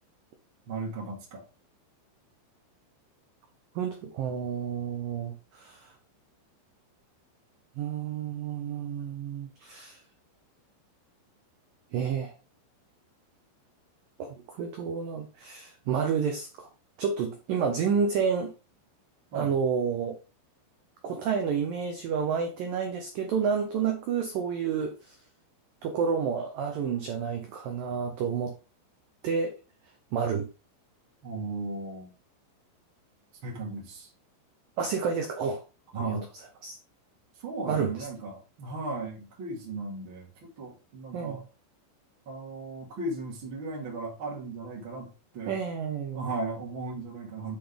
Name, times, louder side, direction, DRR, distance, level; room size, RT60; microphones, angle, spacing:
voice 1, 0.7-1.4 19.3-19.5 31.2-32.1 33.4-34.1 35.9-36.3 37.4-40.3 40.6-41.4 42.3-45.5 46.1-47.6, right 2 dB, 40° right, -2 dB, 2.0 m, -36 dB
voice 2, 3.8-5.9 7.8-10.0 11.9-12.3 14.2-16.7 17.0-18.5 19.3-20.2 21.0-25.1 25.8-28.5 29.2-29.6 30.1-30.5 34.8-35.6 36.1-36.2 36.6-36.8 37.7-37.9 41.1-41.4 45.5-46.3, right 6 dB, 85° right, 4 dB, 1.9 m, -30 dB
8.4 x 5.9 x 3.5 m, 0.31 s
omnidirectional pair, 5.6 m